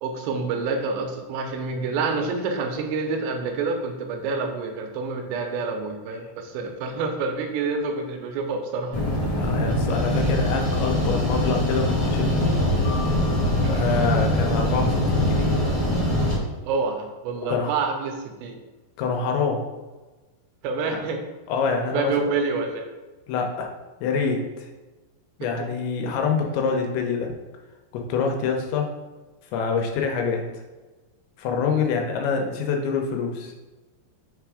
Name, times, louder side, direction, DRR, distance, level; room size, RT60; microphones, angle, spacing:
voice 1, 0.0-9.1 9.3-9.6 10.9-11.1 13.6-13.8 16.6-18.6 20.6-21.2 21.9-22.9 25.6-25.7 31.7-31.9, right 4 dB, 80° right, 4 dB, 2.8 m, -28 dB
sound 1, 8.9-16.4, left 1 dB, 45° left, 0.6 m, -23 dB
voice 2, 9.4-12.6 13.7-15.5 17.5-17.7 19.0-19.6 20.9-21.0 21.5-22.1 23.3-23.7 24.0-24.7 25.4-27.3 27.9-28.9 29.5-30.4 31.4-33.5, left 5 dB, 85° left, 2 dB, 3.0 m, -26 dB
sound 2, 12.9-15.0, left 5 dB, 70° left, 2.6 m, -42 dB
6.6 x 3.4 x 4.8 m, 1.2 s
omnidirectional pair, 5.1 m